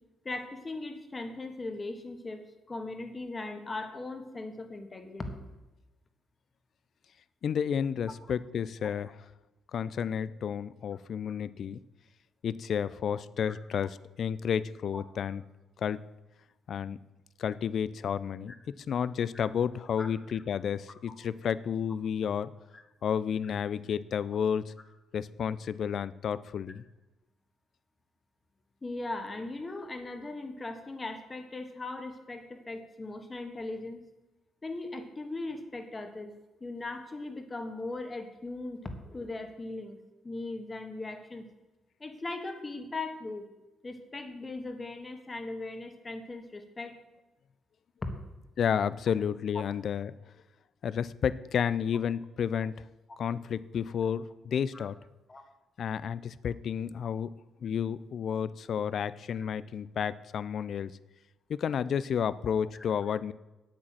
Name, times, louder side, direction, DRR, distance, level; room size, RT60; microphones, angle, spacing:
voice 1, 0.3-5.4 13.5-13.6 14.9-15.0 19.3-19.5 20.0-20.1 28.8-34.0 34.6-36.3 36.6-40.0 40.2-41.5 42.0-43.5 43.8-47.0 54.7-54.9 55.3-55.4, left 2 dB, 25° left, 6 dB, 1.7 m, -39 dB
voice 2, 7.4-9.1 9.7-11.8 12.4-15.4 15.8-16.0 16.7-17.0 17.4-22.5 23.0-24.7 25.1-26.8 48.6-50.1 50.8-52.9 53.2-55.0 55.8-57.3 57.6-60.9 61.5-63.3, left 8 dB, 60° left, 17 dB, 0.5 m, -31 dB
8.7 x 8.5 x 7.5 m, 1.1 s
cardioid pair, 90°, 0 cm